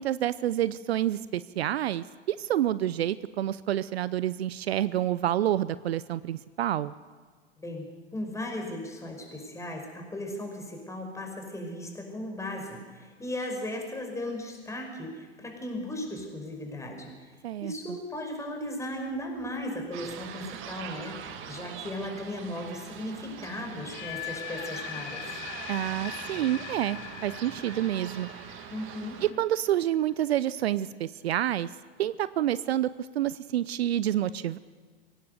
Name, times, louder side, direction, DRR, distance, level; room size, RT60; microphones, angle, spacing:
voice 1, 0.0-6.9 17.4-18.0 25.7-28.3 29.2-31.7 32.0-32.9 33.1-34.6, right 12 dB, 65° right, 17 dB, 0.7 m, -28 dB
voice 2, 7.6-17.1 17.6-21.2 21.5-25.2 28.7-29.2, left 1 dB, 10° left, 2 dB, 5.4 m, -36 dB
sound 1, 19.9-29.3, right 8 dB, 35° right, 2.0 m, -42 dB
sound 2, 23.7-29.7, left 11 dB, 45° left, 2.7 m, -41 dB
23.5 x 18.0 x 6.7 m, 1.5 s
hypercardioid pair, 100°, 33 cm